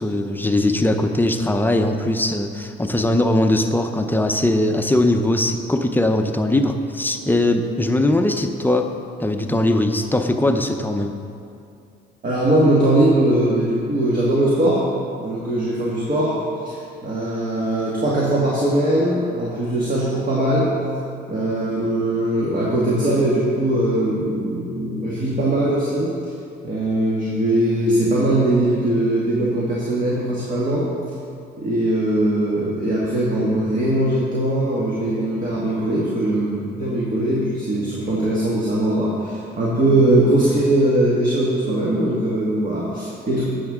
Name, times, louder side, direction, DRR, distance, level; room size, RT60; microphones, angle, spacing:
voice 1, 0.0-8.9 9.2-11.2, left 1 dB, 10° left, 5 dB, 0.6 m, -20 dB
voice 2, 12.2-14.8 15.2-16.3 16.6-20.7 21.3-26.1 26.6-30.9 31.6-43.4, right 1 dB, 45° right, -6 dB, 1.7 m, -20 dB
10.0 x 7.2 x 3.6 m, 2.5 s
cardioid pair, 90°, 20 cm